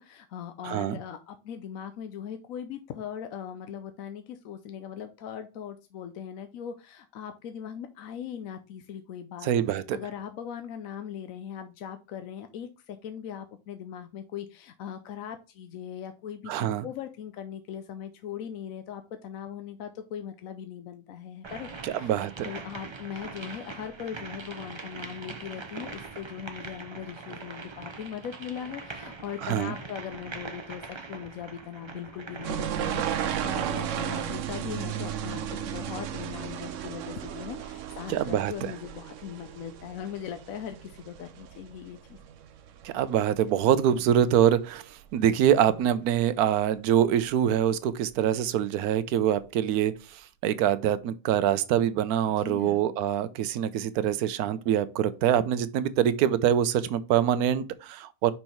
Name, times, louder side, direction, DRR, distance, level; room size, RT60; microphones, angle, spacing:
voice 1, 0.0-42.2 52.4-52.9, left 9 dB, 70° left, 1.0 m, -40 dB
voice 2, 0.6-1.0 9.4-10.0 16.5-16.9 21.8-22.6 29.4-29.7 38.1-38.7 42.8-58.3, right 10 dB, 85° right, 1.1 m, -25 dB
sound 1, 21.4-33.5, right 4 dB, 30° right, 0.5 m, -42 dB
sound 2, 32.4-43.8 44.1-44.6 45.0-45.8 46.1-46.2 47.0-47.1 47.3-47.4, right 9 dB, 65° right, 0.9 m, -35 dB
5.5 x 4.5 x 4.4 m
omnidirectional pair, 1.6 m